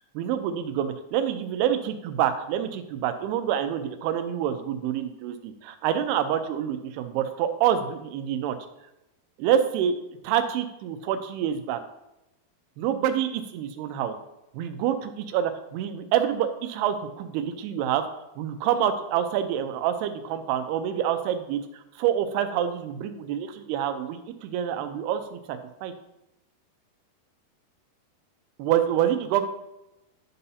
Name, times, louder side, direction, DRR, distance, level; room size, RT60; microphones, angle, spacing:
voice 1, 0.2-8.6 9.4-10.0 10.2-11.8 12.8-14.2 14.5-18.1 18.4-21.6 22.0-25.9 28.6-29.5, right 10 dB, 90° right, 8 dB, 2.7 m, -27 dB
10.5 x 5.5 x 2.7 m, 0.92 s
omnidirectional pair, 4.5 m